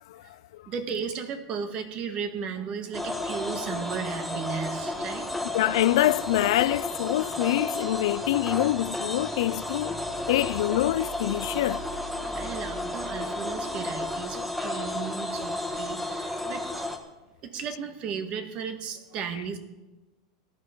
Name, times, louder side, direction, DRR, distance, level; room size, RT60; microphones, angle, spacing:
voice 1, 0.7-5.3 12.3-17.0 17.4-19.6, right 6 dB, 40° right, 1.7 m, -35 dB
sound 1, 2.9-17.0, left 1 dB, ahead, 1.3 m, -32 dB
voice 2, 5.5-10.0 10.3-11.8, left 15 dB, 75° left, 0.3 m, -25 dB
17.0 x 11.5 x 4.5 m
supercardioid pair, 140°, 3 cm